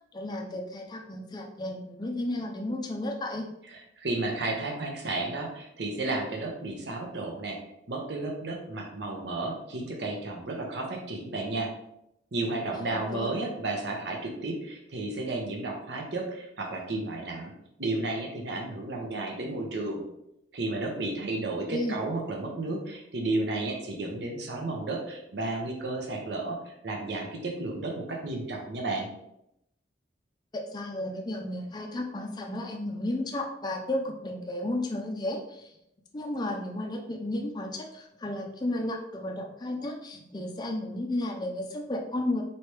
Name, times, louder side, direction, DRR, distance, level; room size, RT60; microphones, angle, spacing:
voice 1, 0.1-3.5 12.8-13.3 21.7-22.0 30.5-35.7 36.1-42.4, left 1 dB, 20° left, 2 dB, 0.4 m, -33 dB
voice 2, 3.7-7.6 7.9-11.7 12.3-17.5 17.8-20.0 20.5-29.1, right 2 dB, 65° right, 1 dB, 0.7 m, -32 dB
4.2 x 3.2 x 3.2 m, 0.81 s
head